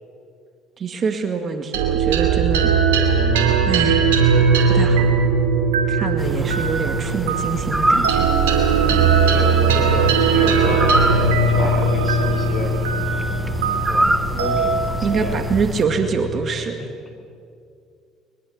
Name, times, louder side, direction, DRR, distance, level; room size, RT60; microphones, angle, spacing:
voice 1, 0.8-2.7 3.7-4.0 4.7-5.1 5.9-8.3 15.0-16.8, right 5 dB, 45° right, 7 dB, 2.1 m, -25 dB
sound 1, 1.7-16.4, right 4 dB, 85° right, 2.8 m, -19 dB
sound 2, 6.2-15.8, right 1 dB, 10° right, 1.0 m, -26 dB
voice 2, 8.8-12.8 13.9-14.8 15.1-15.4, left 2 dB, 25° left, 4 dB, 5.5 m, -30 dB
22.0 x 22.0 x 7.1 m, 2.4 s
hypercardioid pair, 65°, 0 cm